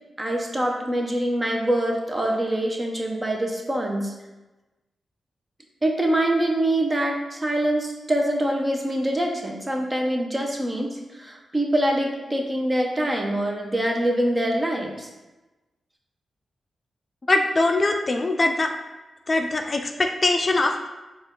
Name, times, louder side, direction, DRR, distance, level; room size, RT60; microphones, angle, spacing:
voice 1, 0.2-4.1 5.8-15.1, right 1 dB, 25° right, 1 dB, 0.8 m, -24 dB
voice 2, 17.3-18.7 19.3-20.9, left 2 dB, 40° left, 4 dB, 0.4 m, -22 dB
4.3 x 2.5 x 3.7 m, 1.1 s
supercardioid pair, 45°, 0 cm